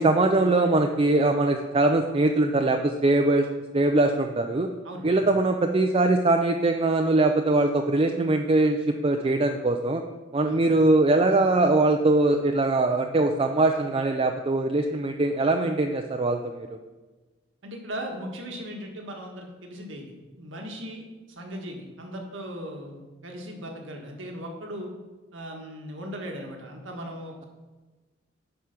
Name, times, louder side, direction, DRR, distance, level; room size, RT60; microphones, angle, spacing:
voice 1, 0.0-3.5 3.7-4.7 5.0-10.0 10.3-16.8, right 2 dB, 30° right, 4 dB, 0.4 m, -22 dB
voice 2, 4.8-5.2 10.4-10.6 17.6-21.0 21.3-24.9 25.3-27.4, equal, 80° right, 1 dB, 1.6 m, -38 dB
10.5 x 4.9 x 5.8 m, 1.2 s
head